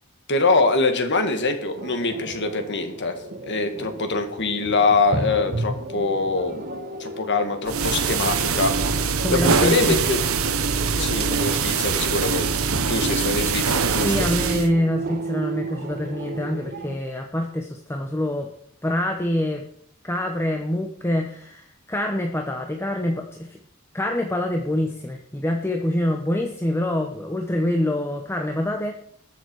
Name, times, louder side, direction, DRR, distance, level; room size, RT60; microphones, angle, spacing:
voice 1, 0.3-3.2 3.4-8.7 9.3-10.2 11.0-14.3, left 3 dB, 55° left, 6 dB, 2.0 m, -24 dB
sound 1, 1.7-17.0, right 2 dB, 45° right, 1.6 m, -34 dB
sound 2, 7.7-14.7, right 5 dB, 85° right, 1.1 m, -23 dB
voice 2, 9.2-10.0 13.9-18.5 18.8-19.7 20.0-23.6 23.9-28.9, left 1 dB, 10° left, 3 dB, 0.9 m, -25 dB
20.5 x 7.1 x 4.7 m, 0.67 s
head